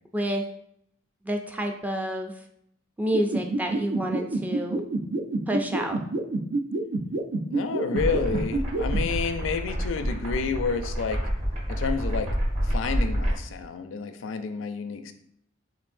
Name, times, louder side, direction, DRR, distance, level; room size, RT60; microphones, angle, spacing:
voice 1, 0.1-0.4 1.2-2.3 3.0-4.8 5.5-6.0, right 1 dB, 10° right, 3 dB, 0.4 m, -28 dB
sound 1, 3.1-9.0, right 2 dB, 65° right, 0.5 m, -27 dB
voice 2, 7.5-11.2 11.7-12.3 12.6-15.1, left 5 dB, 70° left, 9 dB, 0.4 m, -30 dB
sound 2, 8.0-13.4, equal, 35° right, 1.1 m, -28 dB
7.1 x 2.6 x 2.6 m, 0.70 s
head